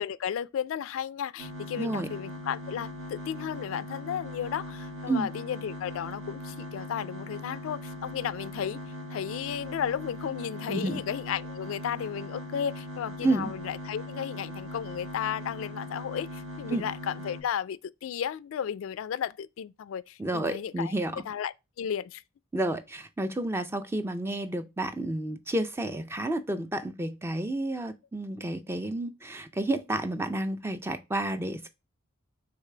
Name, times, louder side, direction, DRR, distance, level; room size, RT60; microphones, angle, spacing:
voice 1, 0.0-8.8 9.1-20.9 21.2-22.2, left 8 dB, 70° left, 0.3 m, -34 dB
sound 1, 1.4-17.4, left 1 dB, 70° right, 1.9 m, -40 dB
voice 2, 1.8-2.1 5.1-5.3 10.7-11.0 13.2-13.5 16.7-16.8 20.2-21.1 22.5-31.7, right 1 dB, 10° right, 0.4 m, -30 dB
4.9 x 3.3 x 3.2 m
head